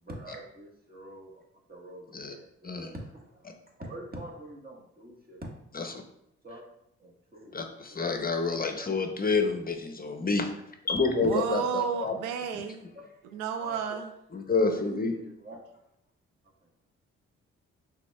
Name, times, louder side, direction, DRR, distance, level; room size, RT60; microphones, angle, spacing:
voice 1, 0.0-1.4 1.7-3.5 3.8-5.5 6.4-6.6 7.0-7.6 7.9-8.1 12.9-13.8 14.7-15.6, right 1 dB, 30° right, 0 dB, 1.5 m, -45 dB
voice 2, 7.5-10.5 10.9-12.1 14.3-15.1, left 4 dB, 30° left, 5 dB, 0.7 m, -28 dB
voice 3, 11.2-12.8 13.3-14.1, right 7 dB, 90° right, 8 dB, 0.5 m, -31 dB
5.8 x 3.6 x 2.3 m, 0.77 s
supercardioid pair, 50°, 31 cm